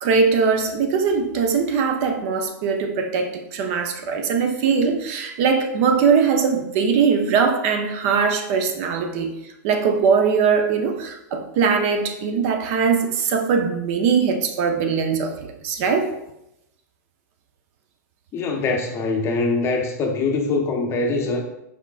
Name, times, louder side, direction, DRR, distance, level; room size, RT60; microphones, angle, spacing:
voice 1, 0.0-9.4 9.6-15.3 15.6-16.1, right 5 dB, 50° right, 5 dB, 0.6 m, -21 dB
voice 2, 18.3-21.4, left 3 dB, 30° left, 3 dB, 0.6 m, -23 dB
4.9 x 3.5 x 2.4 m, 0.86 s
hypercardioid pair, 120°, 9 cm